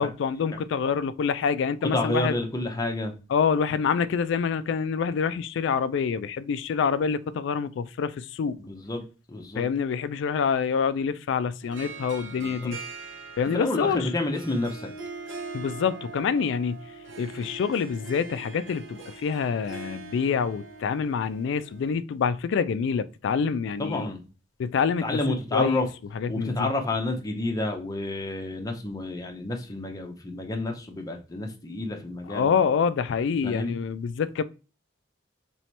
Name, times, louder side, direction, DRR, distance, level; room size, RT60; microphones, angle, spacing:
voice 1, 0.0-2.3 3.3-8.6 9.6-12.8 13.4-14.1 15.5-16.8 17.2-24.1 24.6-25.0 25.5-25.9 26.1-26.7 32.3-34.4, left 6 dB, 65° left, 0.3 m, -26 dB
voice 2, 1.8-3.1 8.6-9.0 9.3-9.7 12.4-12.7 13.5-14.9 23.8-24.2 25.0-25.9 26.3-32.5 33.4-33.8, left 2 dB, 20° left, 0.6 m, -29 dB
Harp, 11.6-21.9, right 4 dB, 75° right, 0.7 m, -42 dB
3.0 x 2.9 x 4.4 m
head